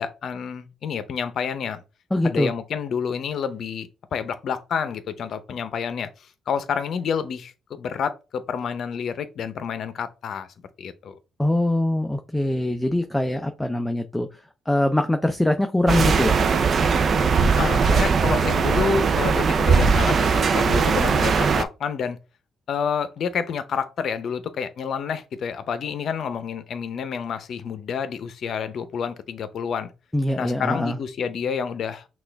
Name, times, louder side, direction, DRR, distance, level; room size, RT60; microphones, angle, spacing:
voice 1, 0.0-1.8 2.2-6.1 6.5-10.5 10.8-11.1 17.6-22.2 22.7-29.9 30.4-32.1, left 6 dB, 60° left, 0.7 m, -29 dB
voice 2, 2.1-2.5 11.4-14.3 14.7-16.4 30.1-31.0, left 1 dB, 10° left, 0.5 m, -22 dB
sound 1, 15.9-21.6, right 5 dB, 50° right, 0.4 m, -20 dB
6.0 x 2.4 x 3.4 m
cardioid pair, 90°, 0 cm